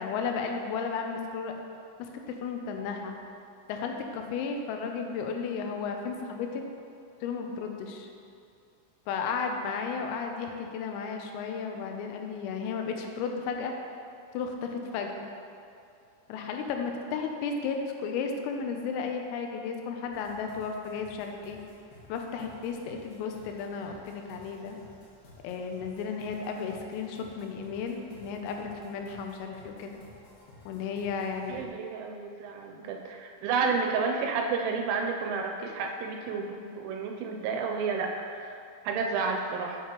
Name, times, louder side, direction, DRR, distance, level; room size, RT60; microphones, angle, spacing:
voice 1, 0.0-1.5 2.0-3.1 3.7-6.6 7.2-8.1 9.1-13.7 14.3-15.3 16.3-21.6 22.1-24.8 25.4-30.0 30.7-31.7 32.7-32.9, left 5 dB, 90° left, 3 dB, 3.3 m, -34 dB
sound 1, 20.1-31.7, left 1 dB, 75° left, 3.5 m, -55 dB
voice 2, 31.5-39.8, right 5 dB, 85° right, 2 dB, 2.9 m, -31 dB
8.4 x 6.6 x 2.9 m, 2.5 s
omnidirectional pair, 5.9 m